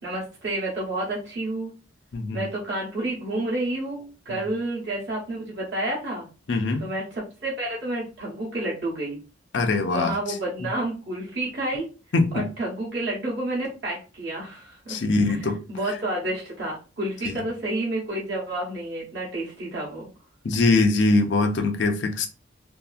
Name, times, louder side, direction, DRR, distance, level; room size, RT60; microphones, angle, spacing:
voice 1, 0.0-1.7 2.3-6.3 6.8-9.2 9.9-11.9 12.3-20.1, right 1 dB, 65° right, 0.9 m, -30 dB
voice 2, 2.1-2.4 4.3-4.4 6.5-6.9 9.5-10.1 12.1-12.5 14.9-15.6 20.4-22.3, left 3 dB, 70° left, 0.5 m, -22 dB
2.7 x 2.4 x 2.4 m
head